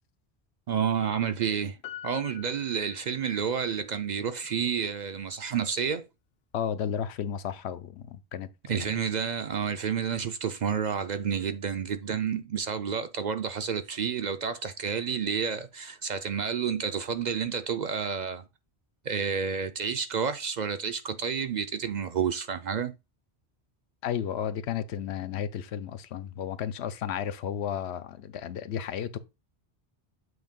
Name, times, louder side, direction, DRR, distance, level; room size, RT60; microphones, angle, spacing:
voice 1, 0.7-1.8 2.0-6.0 8.7-18.4 19.0-22.9, right 7 dB, 55° right, 0.5 m, -30 dB
Piano, 1.8-3.6 3.9-4.0, left 12 dB, 60° left, 0.6 m, -45 dB
voice 2, 6.5-8.8 24.0-29.2, left 9 dB, 85° left, 0.9 m, -33 dB
7.9 x 2.7 x 5.2 m
omnidirectional pair, 1.1 m